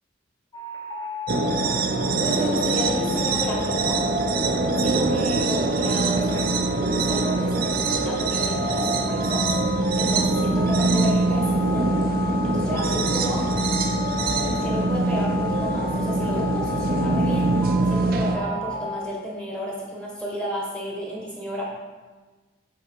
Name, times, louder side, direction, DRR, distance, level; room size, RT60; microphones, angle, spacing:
sound 1, 0.5-19.0, left 4 dB, 20° left, 0.6 m, -34 dB
sound 2, 1.3-18.4, right 3 dB, 55° right, 0.5 m, -23 dB
voice 1, 2.2-4.0 4.8-6.6 6.9-9.5 9.9-13.5 14.4-17.5 17.9-21.7, equal, 5° left, -4 dB, 1.5 m, -32 dB
7.7 x 3.4 x 4.9 m, 1.3 s
head